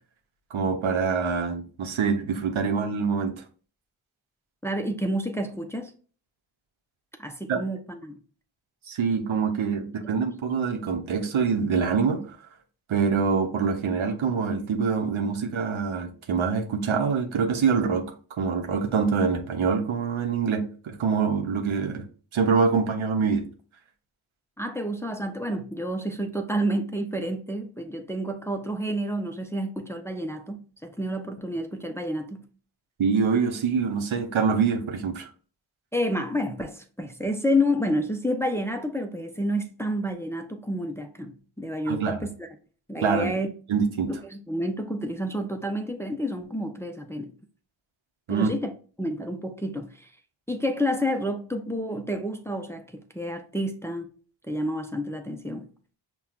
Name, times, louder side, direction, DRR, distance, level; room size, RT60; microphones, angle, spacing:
voice 1, 0.5-3.4 7.5-7.6 8.9-12.2 12.9-22.1 22.3-23.4 33.0-35.3 41.9-42.2 43.0-43.3 43.7-44.1 48.3-48.5, right 5 dB, 80° right, 0.7 m, -25 dB
voice 2, 4.6-5.9 7.2-8.2 9.8-9.9 24.6-32.5 35.9-42.5 42.9-43.5 44.1-47.4 48.3-48.7 49.0-50.1 50.5-54.1 54.5-55.7, equal, 5° left, 0.5 m, -29 dB
5.6 x 2.2 x 2.4 m
cardioid pair, 40°, 47 cm